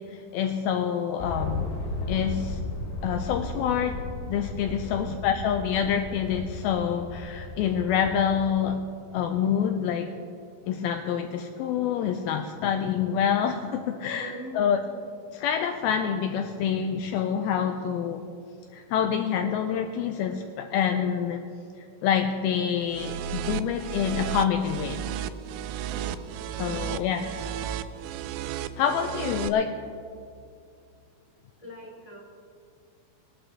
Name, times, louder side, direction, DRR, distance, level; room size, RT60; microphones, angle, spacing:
voice 1, 0.1-1.7 2.1-2.6 3.0-4.0 4.3-8.9 9.1-10.1 10.7-14.8 15.3-18.2 18.7-21.4 21.8-25.0 26.6-27.3 28.8-29.7, left 8 dB, 90° left, 6 dB, 2.1 m, -27 dB
sound 1, 1.2-8.6, left 2 dB, 70° left, 4.3 m, -35 dB
voice 2, 4.8-5.2 14.1-15.0 25.8-26.3 26.6-27.1 29.1-29.6 31.6-32.2, right 1 dB, 10° left, -3 dB, 1.9 m, -43 dB
sound 2, 22.9-29.5, right 10 dB, 90° right, 2.1 m, -33 dB
20.5 x 12.0 x 3.4 m, 2.4 s
omnidirectional pair, 4.9 m